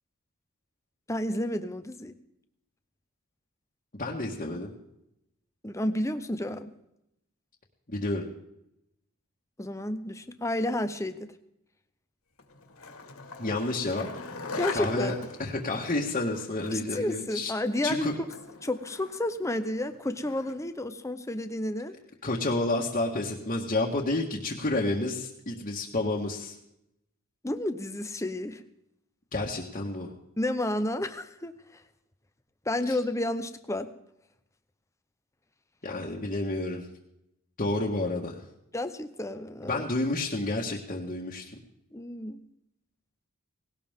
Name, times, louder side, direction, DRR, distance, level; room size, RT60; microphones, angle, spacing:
voice 1, 1.1-2.2 5.6-6.7 9.6-11.3 14.6-15.1 16.7-18.1 18.6-22.0 27.4-28.6 30.4-31.8 32.7-33.9 38.7-39.8 41.9-42.4, left 1 dB, 15° left, 10 dB, 0.8 m, -31 dB
voice 2, 4.0-4.7 7.9-8.2 13.4-14.1 14.7-15.1 15.4-17.5 17.8-18.1 22.2-26.6 29.3-30.1 32.9-33.0 35.8-36.9 37.6-38.4 39.6-41.5, left 2 dB, 35° left, -3 dB, 1.6 m, -30 dB
Skateboard, 12.4-20.7, left 4 dB, 85° left, 2.3 m, -42 dB
18.5 x 17.5 x 3.7 m, 0.83 s
head